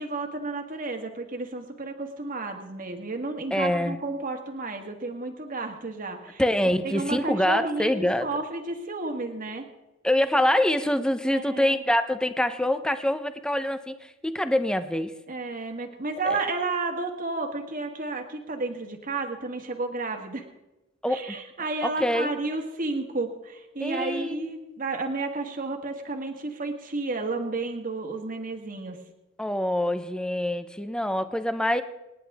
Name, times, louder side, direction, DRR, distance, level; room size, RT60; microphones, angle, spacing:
voice 1, 0.0-6.4 6.8-9.6 11.3-11.8 15.3-20.5 21.1-29.0, right 3 dB, 45° right, 4 dB, 1.5 m, -32 dB
voice 2, 3.5-4.0 6.4-8.3 10.0-15.1 16.2-16.4 21.0-21.4 21.8-22.3 23.8-24.8 29.4-31.8, left 1 dB, 5° left, 10 dB, 0.8 m, -25 dB
27.5 x 10.0 x 3.6 m, 1.0 s
head